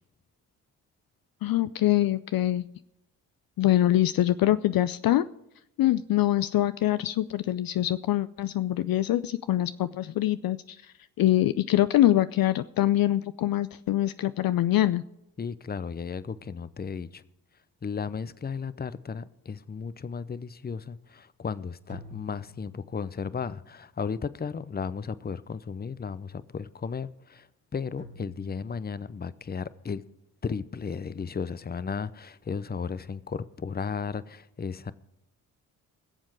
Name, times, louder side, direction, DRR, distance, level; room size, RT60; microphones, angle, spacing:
voice 1, 1.4-2.7 3.6-5.3 5.8-10.8 11.2-15.0, left 13 dB, 50° left, 0.5 m, -24 dB
voice 2, 15.4-17.2 17.8-27.5 27.7-30.0 30.4-34.9, left 5 dB, 20° left, 0.7 m, -34 dB
sound 1, 16.2-17.3 21.9-23.4 28.0-29.1, right 1 dB, 25° right, 2.0 m, -51 dB
20.5 x 7.4 x 4.9 m
hypercardioid pair, 40°, 45 cm